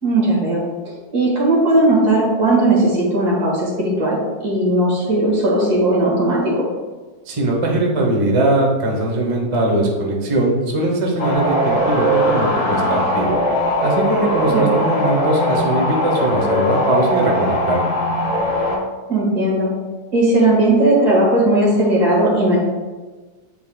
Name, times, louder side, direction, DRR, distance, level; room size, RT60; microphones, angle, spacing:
voice 1, 0.0-4.2 4.4-6.7 14.5-14.8 19.1-19.7 20.1-22.6, right 1 dB, 60° right, -4 dB, 2.4 m, -17 dB
voice 2, 7.3-13.4 13.8-17.8, right 2 dB, 25° right, -2 dB, 0.7 m, -20 dB
sound 1, 11.2-18.8, left 1 dB, 45° left, 2.0 m, -20 dB
9.0 x 4.7 x 2.3 m, 1.3 s
omnidirectional pair, 2.0 m